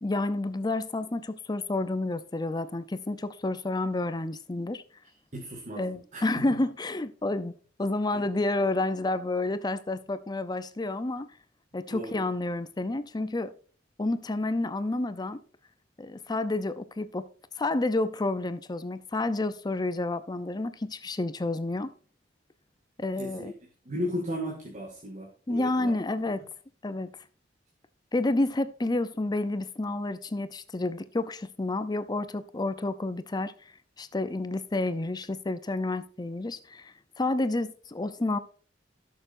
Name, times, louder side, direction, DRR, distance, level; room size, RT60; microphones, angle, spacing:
voice 1, 0.0-4.8 5.8-7.5 7.8-11.3 11.7-13.5 14.0-15.4 16.0-17.3 17.6-21.9 23.0-23.5 25.5-26.4 26.8-27.1 28.1-38.4, left 2 dB, 25° left, 0.5 m, -30 dB
voice 2, 5.3-5.9 6.1-6.6 8.1-8.2 11.9-12.2 23.2-23.5 23.9-26.0, equal, 40° right, 2.0 m, -35 dB
16.5 x 6.7 x 2.6 m
head